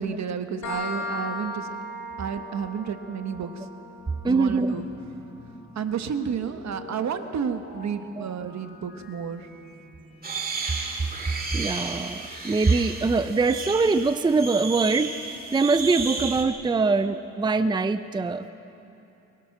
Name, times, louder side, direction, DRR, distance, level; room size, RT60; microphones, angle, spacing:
voice 1, 0.0-1.7 2.2-3.7 4.2-4.9 5.7-9.5, right 7 dB, 65° right, 8 dB, 1.3 m, -31 dB
sound 1, 0.6-8.0, left 2 dB, 65° left, 2.5 m, -39 dB
voice 2, 4.2-4.7 8.2-8.3 11.5-15.2 15.5-18.5, right 4 dB, 15° right, 11 dB, 0.5 m, -23 dB
sound 2, 4.6-11.9, left 1 dB, 35° left, 5.3 m, -48 dB
sound 3, 10.2-16.5, right 3 dB, 30° right, 2.1 m, -33 dB
23.5 x 22.0 x 6.0 m, 3.0 s
cardioid pair, 115°, 29 cm